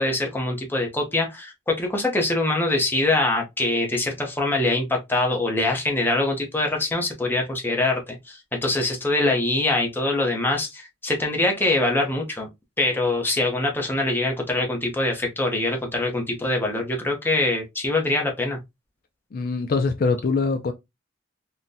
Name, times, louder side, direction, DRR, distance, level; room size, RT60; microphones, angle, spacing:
voice 1, 0.0-12.5 12.8-18.6, left 2 dB, 10° left, 0.7 m, -24 dB
voice 2, 19.3-20.7, left 4 dB, 45° left, 0.4 m, -23 dB
3.8 x 2.1 x 2.6 m
head